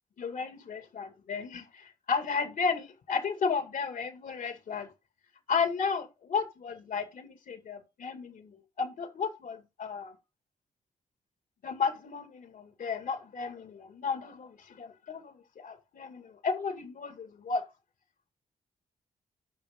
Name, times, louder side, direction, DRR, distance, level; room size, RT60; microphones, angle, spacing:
voice 1, 0.2-4.9 5.5-10.2 11.6-17.6, left 5 dB, 70° left, 2.3 m, -33 dB
12.0 x 6.0 x 3.7 m
cardioid pair, 75°, 15 cm